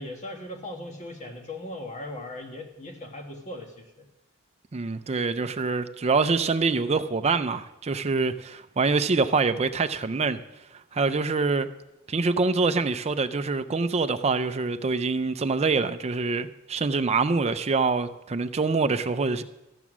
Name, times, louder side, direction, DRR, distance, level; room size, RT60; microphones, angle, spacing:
voice 1, 0.0-4.0, left 1 dB, 30° left, 1.5 m, -38 dB
voice 2, 4.7-10.4 10.9-11.7 12.1-19.4, right 4 dB, 30° right, 0.5 m, -25 dB
14.0 x 7.1 x 6.1 m
head